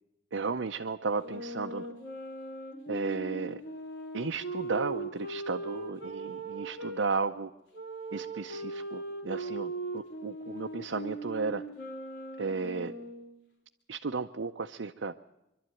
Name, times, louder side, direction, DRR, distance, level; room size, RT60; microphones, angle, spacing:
voice 1, 0.3-1.9 2.9-3.6 4.1-7.5 8.1-11.6 12.4-12.9 13.9-15.1, right 4 dB, 80° right, 4 dB, 0.7 m, -34 dB
sound 1, 1.2-7.0 7.7-13.4, right 2 dB, 80° left, 4.0 m, -39 dB
25.5 x 12.0 x 9.1 m, 0.91 s
head